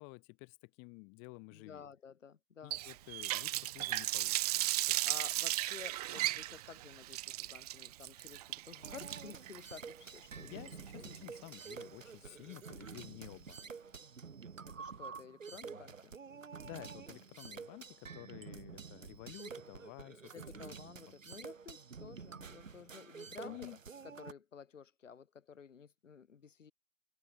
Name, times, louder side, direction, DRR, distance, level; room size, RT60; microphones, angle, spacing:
voice 1, 0.0-1.8 2.6-5.0 10.4-13.7 16.6-20.7 23.3-23.8, left 34 dB, 35° left, 3.2 m, -52 dB
voice 2, 1.5-2.8 5.0-10.7 10.9-11.3 13.1-13.4 14.6-16.2 20.3-23.7 24.0-26.7, left 6 dB, 75° left, 6.9 m, -53 dB
Water tap faucet, 2.7-11.6, right 16 dB, 35° right, 0.5 m, -36 dB
sound 1, 8.8-24.3, right 5 dB, 85° right, 2.6 m, -49 dB
hypercardioid pair, 125°, 38 cm